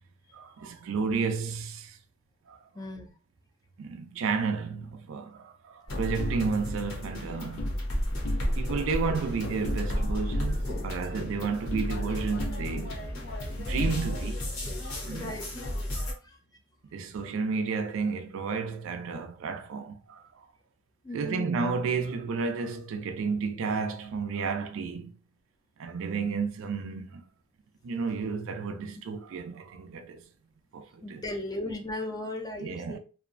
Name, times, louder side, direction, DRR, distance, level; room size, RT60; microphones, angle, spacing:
voice 1, 0.3-2.0 2.5-2.6 3.8-7.7 8.6-13.1 13.6-14.4 14.8-15.4 15.9-16.1 16.9-20.2 21.1-25.2 25.8-27.2 27.8-30.2 30.7-31.2 32.6-33.0, right 5 dB, 65° right, 0.3 m, -32 dB
voice 2, 2.7-3.1 15.1-15.5 16.2-16.4 16.9-17.0 21.0-21.5 25.8-25.9 28.9-29.0 31.0-33.0, left 2 dB, 20° left, 0.4 m, -37 dB
sound 1, 5.9-16.1, equal, 85° left, 0.9 m, -33 dB
sound 2, 6.2-7.8 8.1-8.8 9.1-10.0 10.3-12.1 12.4-14.5, left 1 dB, 70° left, 0.5 m, -37 dB
2.6 x 2.0 x 2.5 m
head